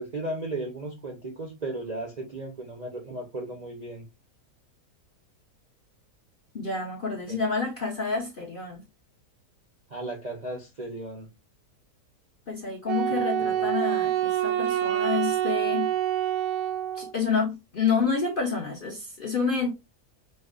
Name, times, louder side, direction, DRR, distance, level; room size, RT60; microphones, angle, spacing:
voice 1, 0.0-4.0 7.3-7.4 9.9-11.3 13.1-13.7, right 2 dB, 45° right, 0.5 m, -35 dB
voice 2, 6.5-8.8 12.5-15.9 16.9-19.7, left 5 dB, 50° left, 0.6 m, -28 dB
Wind instrument woodwind instrument, 12.9-17.1, right 11 dB, 70° right, 0.9 m, -26 dB
5.2 x 2.1 x 2.4 m
omnidirectional pair, 1.7 m